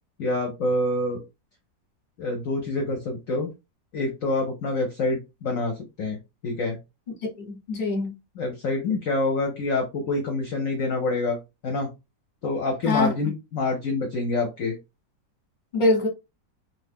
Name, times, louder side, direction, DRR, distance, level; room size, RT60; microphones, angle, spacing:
voice 1, 0.2-1.2 2.2-3.5 3.9-6.2 6.4-6.8 8.4-11.4 11.6-11.9 12.4-14.8, left 2 dB, 55° left, 1.0 m, -26 dB
voice 2, 7.4-8.1 12.8-13.1 15.7-16.1, left 2 dB, 30° left, 1.1 m, -23 dB
2.7 x 2.6 x 3.5 m
omnidirectional pair, 2.0 m